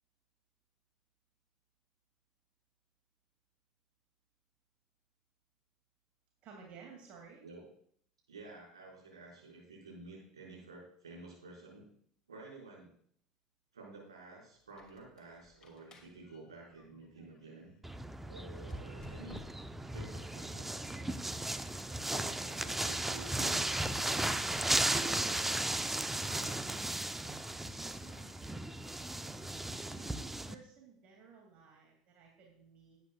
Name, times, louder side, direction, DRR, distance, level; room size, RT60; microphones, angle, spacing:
voice 1, 6.4-7.4 27.9-28.5 29.9-33.0, right 5 dB, 45° right, 0 dB, 2.4 m, -56 dB
voice 2, 8.3-11.8 12.3-12.9 13.7-17.7 18.2-19.5 19.9-20.8 22.0-24.4 25.0-26.8, right 3 dB, 80° right, -4 dB, 5.1 m, -51 dB
Squeak, 14.6-17.8 18.6-19.9, left 4 dB, 25° left, 2.5 m, -58 dB
sound 1, 17.8-30.5, right 1 dB, 10° right, 0.7 m, -36 dB
18.5 x 9.1 x 2.4 m, 0.63 s
figure-of-eight pair, 70°, 3 cm